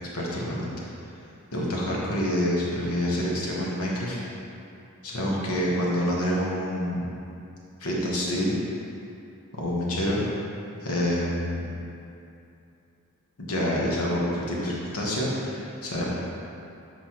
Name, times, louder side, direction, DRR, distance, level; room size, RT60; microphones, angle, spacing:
voice 1, 0.1-0.7 1.5-4.2 5.0-7.1 7.8-8.5 9.5-10.2 10.8-11.7 13.4-16.0, equal, 85° left, -4 dB, 1.2 m, -27 dB
7.8 x 4.4 x 3.0 m, 2.7 s
head